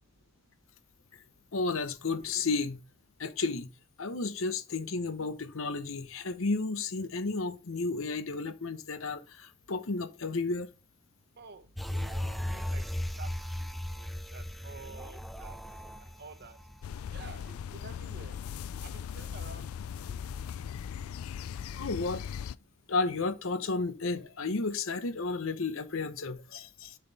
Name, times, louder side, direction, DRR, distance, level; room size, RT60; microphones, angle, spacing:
voice 1, 1.5-2.8 3.2-3.7 4.0-10.7 21.7-22.2 22.9-27.0, left 3 dB, 70° left, 0.8 m, -32 dB
voice 2, 11.4-12.8 13.2-13.3 14.0-15.6 16.2-16.6 17.1-18.4 18.8-19.7 20.3-20.4, right 4 dB, 50° right, 0.9 m, -49 dB
sound 1, 11.8-17.4 17.8-17.9, left 1 dB, ahead, 0.4 m, -37 dB
sound 2, 16.8-22.6, left 8 dB, 90° left, 0.3 m, -39 dB
7.5 x 5.6 x 4.1 m
head